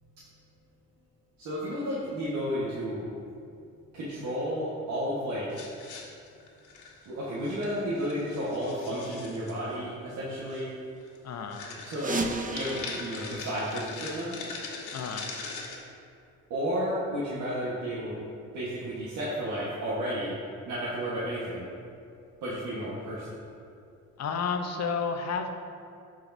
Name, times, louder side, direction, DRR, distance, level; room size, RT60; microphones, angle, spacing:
voice 1, 1.4-3.1 3.9-5.5 7.0-10.8 11.8-12.2 12.5-14.3 16.5-18.2 18.5-20.4 20.7-21.7 22.4-23.3, equal, 85° right, -8 dB, 1.5 m, -32 dB
sound 1, 5.5-7.1 7.4-7.7 8.0-9.6 10.5-10.6 11.0-11.2 11.5-15.8, left 4 dB, 85° left, 1.4 m, -41 dB
voice 2, 11.2-11.7 14.9-15.3 24.2-25.5, left 5 dB, 60° left, 5 dB, 0.8 m, -31 dB
sound 2, 11.9-14.6, right 3 dB, 25° right, 0.7 m, -35 dB
12.5 x 4.7 x 2.7 m, 2.5 s
cardioid pair, 90°, 30 cm